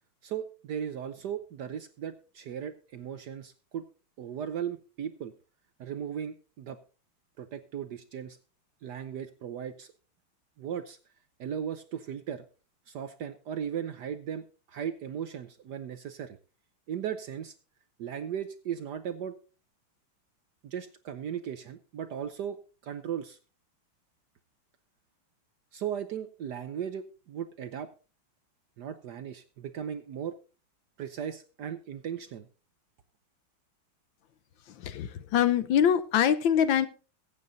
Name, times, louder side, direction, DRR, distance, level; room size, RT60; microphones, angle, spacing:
voice 1, 0.2-3.9 4.2-5.3 5.8-6.8 7.4-8.4 8.8-9.9 10.6-11.0 11.4-12.4 12.9-16.4 16.9-17.5 18.0-19.3 20.6-22.6 22.8-23.4 25.7-27.9 28.8-30.3 31.0-32.5, right 8 dB, 65° right, 11 dB, 1.1 m, -37 dB
voice 2, 34.7-36.9, left 9 dB, 70° left, 13 dB, 1.4 m, -24 dB
22.0 x 8.6 x 2.6 m, 0.35 s
omnidirectional pair, 2.4 m